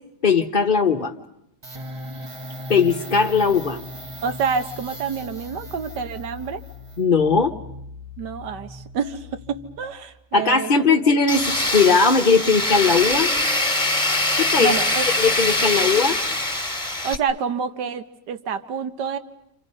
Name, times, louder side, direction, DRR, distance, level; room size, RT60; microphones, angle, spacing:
voice 1, 0.2-1.1 2.7-3.8 7.0-7.5 10.3-13.3 14.4-14.7 15.2-16.2, left 5 dB, 35° left, 1 dB, 1.0 m, -19 dB
sound 1, 1.6-10.1, left 1 dB, 20° right, 1.0 m, -38 dB
voice 2, 4.2-6.6 8.2-10.7 14.6-15.1 17.0-19.2, right 6 dB, 75° right, 9 dB, 1.8 m, -27 dB
Tools, 11.3-17.2, left 2 dB, 5° left, 1.9 m, -23 dB
29.5 x 27.5 x 5.5 m, 0.80 s
omnidirectional pair, 1.8 m